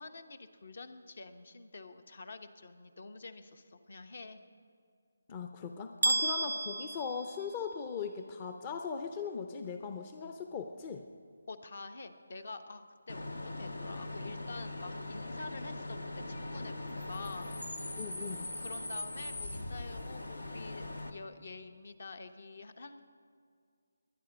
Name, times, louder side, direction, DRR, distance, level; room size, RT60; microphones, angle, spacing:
voice 1, 0.0-4.4 11.5-13.3 13.6-17.6 18.6-23.0, left 3 dB, 60° left, 10 dB, 1.0 m, -47 dB
voice 2, 5.3-11.0 17.9-18.5, left 6 dB, 25° left, 6 dB, 0.6 m, -39 dB
sound 1, 6.0-8.0, right 2 dB, 75° right, 0.4 m, -33 dB
Bus / Idling / Screech, 13.1-21.1, left 2 dB, 85° left, 1.1 m, -40 dB
21.5 x 9.8 x 5.1 m, 2.2 s
figure-of-eight pair, 155°, 0 cm